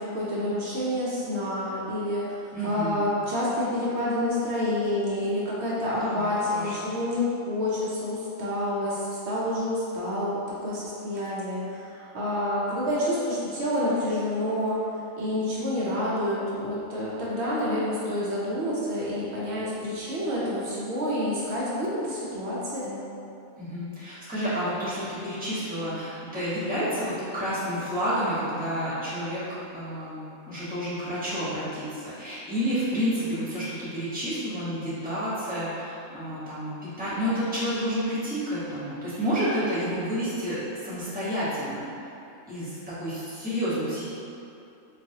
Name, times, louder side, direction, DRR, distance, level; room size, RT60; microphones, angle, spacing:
voice 1, 0.0-14.9 15.2-23.0, left 1 dB, 60° right, -7 dB, 0.8 m, -28 dB
voice 2, 2.5-3.1 5.9-6.9 23.6-42.1 42.5-44.1, equal, 5° right, -12 dB, 0.9 m, -30 dB
4.0 x 2.3 x 2.7 m, 2.7 s
omnidirectional pair, 1.5 m